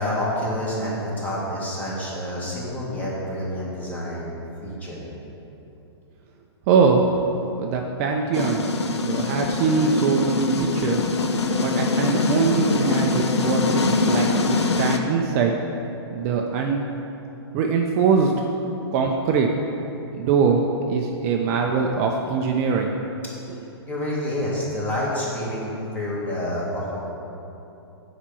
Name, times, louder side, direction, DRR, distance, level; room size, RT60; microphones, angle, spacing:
voice 1, 0.0-4.3 4.6-5.1 23.9-27.0, left 1 dB, 10° left, -6 dB, 1.9 m, -28 dB
voice 2, 6.7-7.0 7.6-8.6 9.0-11.0 11.6-15.6 16.1-16.9 17.5-18.3 18.9-19.5 20.1-23.0, right 5 dB, 35° right, 2 dB, 0.6 m, -22 dB
sound 1, 8.3-15.0, left 3 dB, 90° left, 0.8 m, -23 dB
7.2 x 5.1 x 7.0 m, 2.9 s
hypercardioid pair, 140°, 14 cm